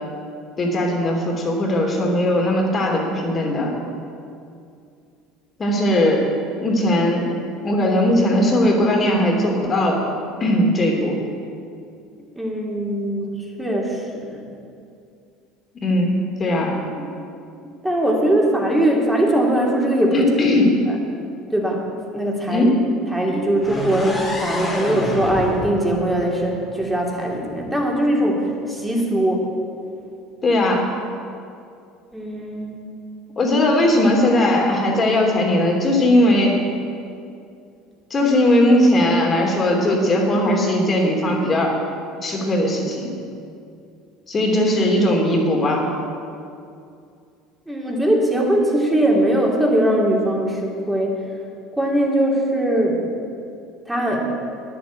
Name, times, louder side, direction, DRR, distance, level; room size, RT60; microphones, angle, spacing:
voice 1, 0.6-3.7 5.6-6.3 6.6-7.3 7.6-10.0 10.4-11.2 15.8-16.7 20.1-20.8 22.5-22.8 30.4-30.9 33.4-36.6 38.1-41.8 42.2-43.1 44.3-45.9, left 1 dB, 35° left, 0 dB, 3.0 m, -18 dB
voice 2, 12.4-14.0 14.3-14.4 17.0-17.1 17.6-20.3 20.9-21.0 21.5-21.8 22.1-22.7 23.1-29.5 32.1-32.8 47.7-51.2 51.8-53.0 53.9-54.2, right 1 dB, 5° right, -1 dB, 2.8 m, -21 dB
sound 1, 23.6-27.5, left 1 dB, 15° left, 2.6 m, -29 dB
10.0 x 7.8 x 8.9 m, 2.5 s
hypercardioid pair, 80°, 0 cm